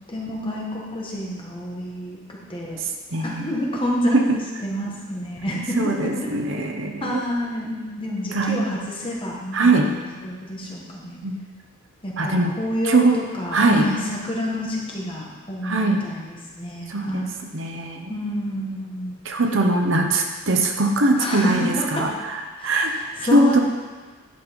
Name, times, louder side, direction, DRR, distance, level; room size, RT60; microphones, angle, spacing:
voice 1, 0.1-2.8 3.2-6.3 7.0-11.2 12.0-17.4 18.1-19.1 21.2-22.1 22.6-23.6, equal, 25° left, -3 dB, 1.5 m, -28 dB
voice 2, 2.8-3.5 4.1-4.2 5.8-7.2 8.3-8.6 9.5-9.9 11.2-11.4 12.2-12.5 12.8-13.2 13.5-13.9 15.6-16.0 16.9-17.3 17.5-18.1 19.2-22.9 23.3-23.6, right 2 dB, 60° right, 3 dB, 0.9 m, -21 dB
10.5 x 5.4 x 5.2 m, 1.4 s
head